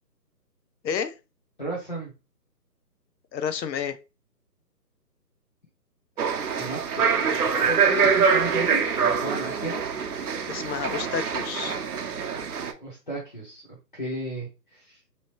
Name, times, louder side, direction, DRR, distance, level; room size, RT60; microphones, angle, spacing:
voice 1, 0.8-1.1 3.3-4.0 10.5-11.8, left 7 dB, 90° left, 0.6 m, -30 dB
voice 2, 1.6-2.1 6.5-9.8 12.8-13.6 13.9-15.0, right 1 dB, 30° left, 0.6 m, -34 dB
sound 1, 6.2-12.7, right 6 dB, 65° right, 0.6 m, -24 dB
2.9 x 2.1 x 2.9 m
hypercardioid pair, 160°, 50 cm